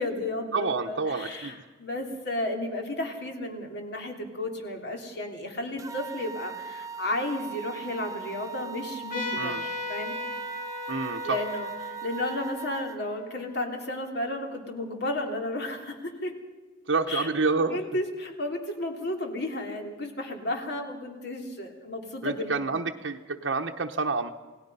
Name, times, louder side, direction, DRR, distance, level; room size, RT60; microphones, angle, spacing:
voice 1, 0.0-10.2 11.2-16.3 17.1-17.3 17.5-22.6, left 1 dB, 60° left, 3 dB, 3.1 m, -33 dB
voice 2, 0.5-1.6 9.4-9.6 10.9-11.4 16.9-17.8 22.2-24.3, right 4 dB, 80° right, 2 dB, 0.9 m, -28 dB
sound 1, 5.8-13.0, right 6 dB, 20° right, 0.7 m, -40 dB
Trumpet, 9.1-14.2, left 2 dB, 45° left, 3.1 m, -37 dB
28.0 x 18.0 x 5.5 m, 1.2 s
head